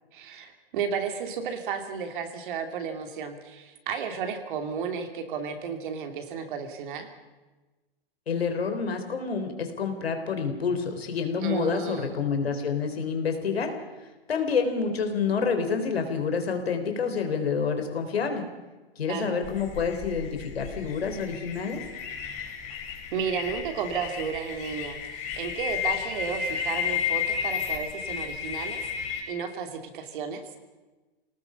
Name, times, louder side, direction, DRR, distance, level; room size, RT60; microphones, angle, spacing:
voice 1, 0.1-7.1 11.4-12.2 19.1-19.4 23.1-28.8 29.3-30.4, right 6 dB, 55° right, 6 dB, 2.9 m, -33 dB
voice 2, 8.3-13.7 14.3-18.5 19.0-21.8, left 5 dB, 85° left, 5 dB, 3.7 m, -28 dB
sound 1, 19.4-29.2, left 7 dB, 25° left, 5.3 m, -33 dB
25.5 x 18.5 x 5.7 m, 1.2 s
hypercardioid pair, 130°, 30 cm